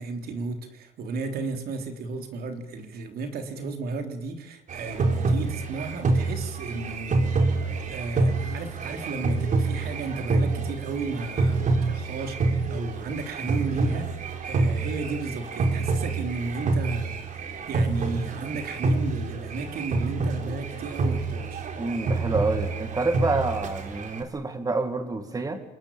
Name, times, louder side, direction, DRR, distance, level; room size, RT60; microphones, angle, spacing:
voice 1, 0.0-7.3 7.9-17.2 17.7-21.7, right 3 dB, 65° right, 6 dB, 3.6 m, -34 dB
sound 1, 4.7-24.2, right 3 dB, 50° right, 3.8 m, -27 dB
voice 2, 21.8-25.6, right 3 dB, 20° right, 8 dB, 2.3 m, -28 dB
27.5 x 20.5 x 8.8 m, 1.0 s
cardioid pair, 110°, 17 cm